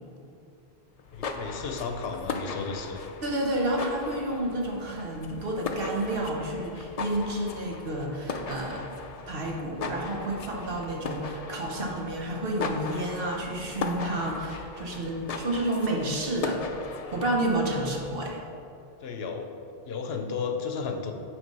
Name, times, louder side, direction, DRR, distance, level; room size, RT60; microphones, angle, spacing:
sound 1, 1.0-18.3, left 4 dB, 55° left, 0.4 m, -38 dB
voice 1, 1.1-3.0 17.8-18.0 19.0-19.5 19.8-21.1, left 5 dB, 70° left, 4 dB, 0.9 m, -33 dB
voice 2, 3.2-8.8 9.3-16.6 17.1-18.4, right 1 dB, 60° right, -1 dB, 1.2 m, -30 dB
9.1 x 3.3 x 5.4 m, 2.6 s
omnidirectional pair, 1.1 m